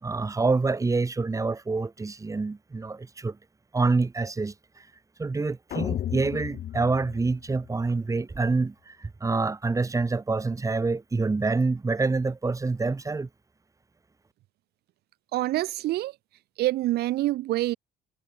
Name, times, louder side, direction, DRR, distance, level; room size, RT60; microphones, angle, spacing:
voice 1, 0.0-3.4 3.7-4.9 5.2-13.3, right 3 dB, 20° right, 2.5 m, -27 dB
sound 1, 5.7-8.0, left 11 dB, 55° left, 1.3 m, -34 dB
voice 2, 15.3-16.2 16.6-17.8, right 16 dB, 70° right, 0.8 m, -26 dB
cardioid pair, 110°, 17 cm